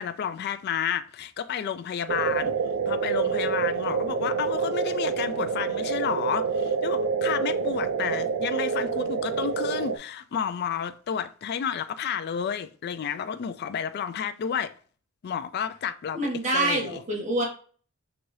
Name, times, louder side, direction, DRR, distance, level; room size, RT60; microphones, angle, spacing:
voice 1, 0.0-2.5 2.9-14.7 15.2-17.0, left 8 dB, 50° left, 0.3 m, -31 dB
sound 1, 2.1-10.0, right 5 dB, 90° right, 0.4 m, -27 dB
voice 2, 16.1-17.4, right 2 dB, 35° right, 1.4 m, -26 dB
6.0 x 2.7 x 3.1 m
head